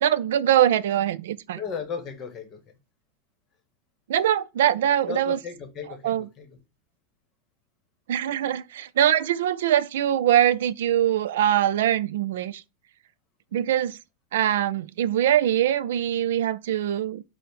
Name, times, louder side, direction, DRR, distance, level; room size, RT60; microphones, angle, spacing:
voice 1, 0.0-1.6 4.1-5.4 6.0-6.3 8.1-12.6 13.5-14.0 14.3-17.2, right 11 dB, 85° right, 0.3 m, -23 dB
voice 2, 1.5-2.6 5.1-6.5, left 6 dB, 25° left, 0.9 m, -35 dB
5.0 x 2.0 x 4.5 m
supercardioid pair, 160°, 0 cm